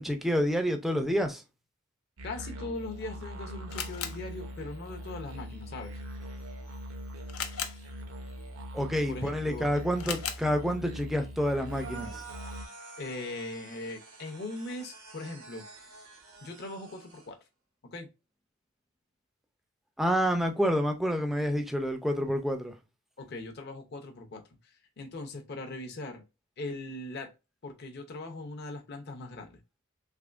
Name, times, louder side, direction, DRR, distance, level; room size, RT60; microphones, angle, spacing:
voice 1, 0.0-1.4 8.7-12.2 20.0-22.7, equal, ahead, 0.4 m, -28 dB
voice 2, 2.2-6.0 9.1-9.7 13.0-15.6 16.4-17.4 17.9-18.1 23.2-26.2 26.6-27.3 27.6-29.6, left 2 dB, 50° left, 0.7 m, -40 dB
sound 1, 2.2-12.7, equal, 70° right, 0.6 m, -42 dB
Camera, 2.8-12.6, left 8 dB, 85° left, 0.6 m, -44 dB
sound 2, 11.7-17.3, right 4 dB, 90° right, 1.4 m, -48 dB
3.5 x 2.9 x 2.4 m
head